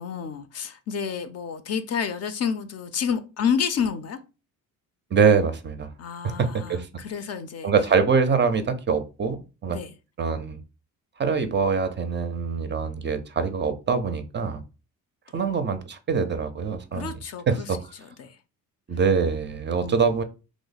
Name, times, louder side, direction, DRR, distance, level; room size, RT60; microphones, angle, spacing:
voice 1, 0.0-4.2 6.0-7.7 9.7-9.9 16.9-18.4 19.8-20.1, left 7 dB, 45° left, 0.5 m, -30 dB
voice 2, 5.1-5.9 6.2-6.9 7.6-9.8 10.2-10.6 11.2-14.6 15.3-17.2 17.5-17.9 18.9-20.2, right 5 dB, 30° right, 0.4 m, -24 dB
3.0 x 2.1 x 4.0 m
cardioid pair, 95°, 35 cm